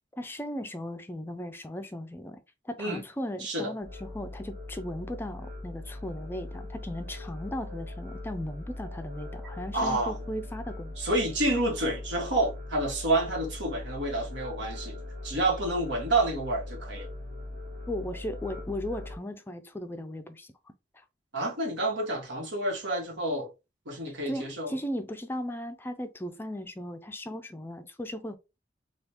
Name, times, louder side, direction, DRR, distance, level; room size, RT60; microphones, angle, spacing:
voice 1, 0.2-11.1 17.9-20.5 20.9-21.0 24.3-28.4, left 1 dB, 15° left, 0.4 m, -37 dB
voice 2, 3.4-3.7 9.7-10.3 11.0-17.1 21.3-23.5 23.8-24.8, right 2 dB, 90° right, 1.2 m, -29 dB
sound 1, 3.8-19.2, left 1 dB, 50° right, 0.9 m, -40 dB
3.4 x 2.4 x 2.9 m
head